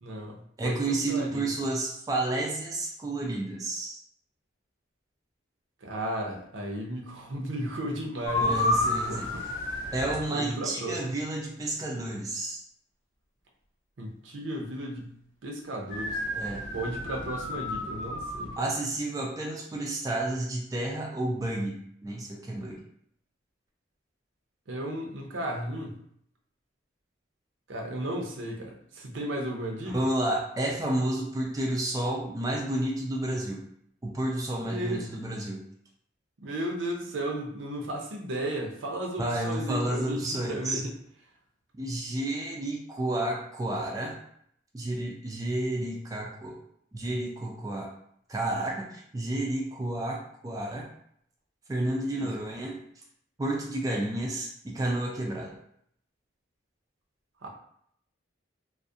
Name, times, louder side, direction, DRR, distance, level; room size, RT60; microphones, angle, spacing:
voice 1, 0.0-1.4 5.8-8.6 9.1-9.4 10.3-11.0 14.0-16.2 16.7-18.5 24.7-26.0 27.7-29.9 34.6-35.0 36.4-40.9 52.1-52.3 57.4-57.5, right 1 dB, 80° right, 0 dB, 0.5 m, -34 dB
voice 2, 0.6-4.0 8.4-9.3 9.9-12.6 16.3-16.6 18.6-22.8 29.9-33.6 34.0-35.6 39.2-40.8 41.8-44.2 44.7-46.6 46.9-47.9 48.3-50.9 51.7-52.8 53.4-55.6, right 1 dB, 20° right, -1 dB, 0.3 m, -31 dB
sound 1, 8.3-10.2 15.9-18.6, left 2 dB, 80° left, 0.7 m, -30 dB
2.3 x 2.0 x 2.6 m, 0.68 s
head